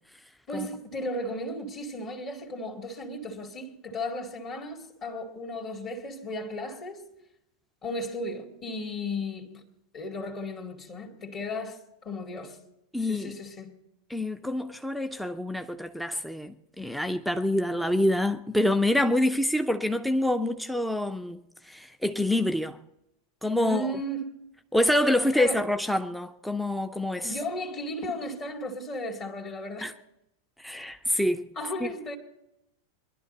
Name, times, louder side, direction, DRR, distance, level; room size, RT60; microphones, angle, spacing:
voice 1, 0.5-7.0 7.8-9.6 9.9-12.6 13.0-13.8 23.6-24.5 25.3-25.7 27.2-29.9 31.6-32.2, left 1 dB, 35° left, 2.2 m, -35 dB
voice 2, 12.9-13.3 14.1-21.4 21.7-22.8 23.4-23.9 24.7-27.4 29.8-29.9 30.6-31.5 31.8-31.9, left 1 dB, ahead, 0.6 m, -26 dB
22.0 x 11.5 x 4.3 m
figure-of-eight pair, 90°, 0 cm